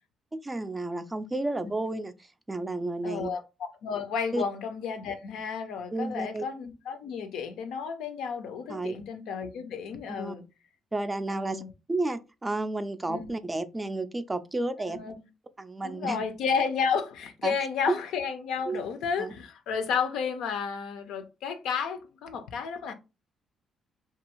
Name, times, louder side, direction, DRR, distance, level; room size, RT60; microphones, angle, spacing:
voice 1, 0.3-2.1 2.5-3.3 4.3-4.4 5.9-6.4 8.7-9.0 10.2-10.4 10.9-11.6 11.9-15.0 15.6-16.3 17.4-17.5 17.9-18.0 18.7-18.8 19.2-19.3, right 2 dB, 20° right, 0.3 m, -31 dB
voice 2, 3.0-3.4 3.8-10.4 11.3-11.7 13.1-13.3 14.8-15.2 15.8-22.9, left 6 dB, 85° left, 0.4 m, -32 dB
2.6 x 2.4 x 2.9 m
cardioid pair, 90°, 0 cm